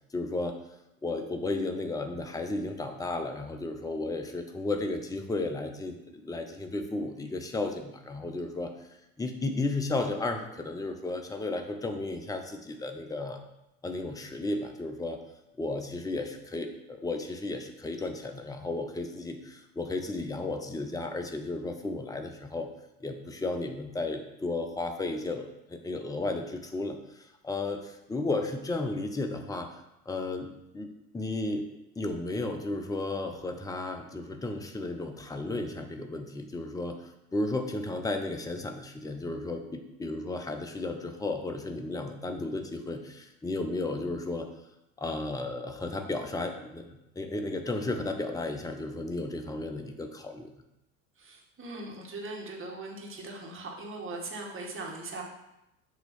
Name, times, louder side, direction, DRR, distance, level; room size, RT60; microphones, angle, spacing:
voice 1, 0.1-0.5 1.0-8.7 9.2-13.4 13.8-15.2 15.6-22.7 23.0-31.7 31.9-44.5 45.0-46.9 47.1-50.5, left 2 dB, 10° left, 5 dB, 0.8 m, -34 dB
voice 2, 51.2-55.2, right 2 dB, 30° right, 0 dB, 1.9 m, -40 dB
8.0 x 3.1 x 6.2 m, 0.89 s
hypercardioid pair, 70°, 43 cm